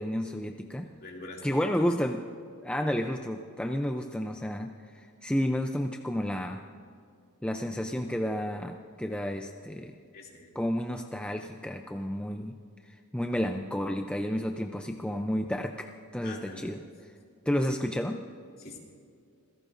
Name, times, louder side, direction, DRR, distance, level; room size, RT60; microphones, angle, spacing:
voice 1, 0.0-0.9 1.4-2.2 2.6-6.6 7.4-9.9 10.6-12.6 12.8-16.8 17.5-18.2, equal, 5° left, 4 dB, 0.4 m, -31 dB
voice 2, 0.8-1.9 10.1-10.6 16.2-16.7 17.7-17.8 18.6-18.8, left 2 dB, 45° left, -2 dB, 2.6 m, -44 dB
26.5 x 16.5 x 2.6 m, 2.4 s
head